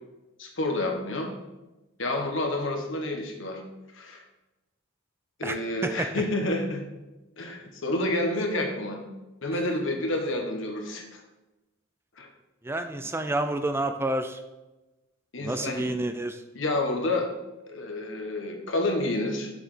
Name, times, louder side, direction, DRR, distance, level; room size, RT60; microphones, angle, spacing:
voice 1, 0.4-1.3 2.0-3.6 3.9-4.2 5.4-6.8 7.4-9.0 9.4-11.2 12.2-12.3 15.3-15.9 16.5-17.3 17.7-19.5, left 2 dB, 65° left, 3 dB, 1.4 m, -29 dB
voice 2, 12.6-14.4 15.4-16.4, right 1 dB, 10° right, 8 dB, 0.4 m, -29 dB
6.9 x 6.0 x 5.0 m, 1.0 s
head